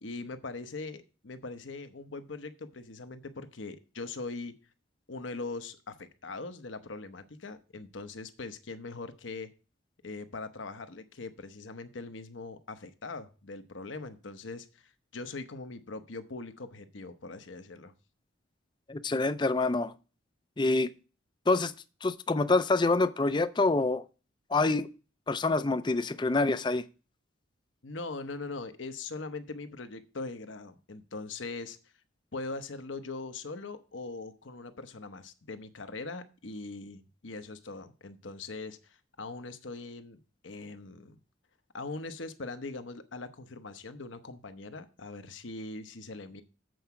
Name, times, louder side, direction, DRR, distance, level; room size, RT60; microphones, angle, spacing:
voice 1, 0.0-4.5 5.1-9.5 10.0-17.9 27.8-31.8 32.3-41.2 41.7-46.4, left 3 dB, 70° left, 0.9 m, -41 dB
voice 2, 18.9-19.9 20.6-20.9 21.5-21.7 22.0-24.0 24.5-24.9 25.3-26.8, left 3 dB, 20° left, 0.4 m, -26 dB
7.8 x 4.7 x 6.9 m
head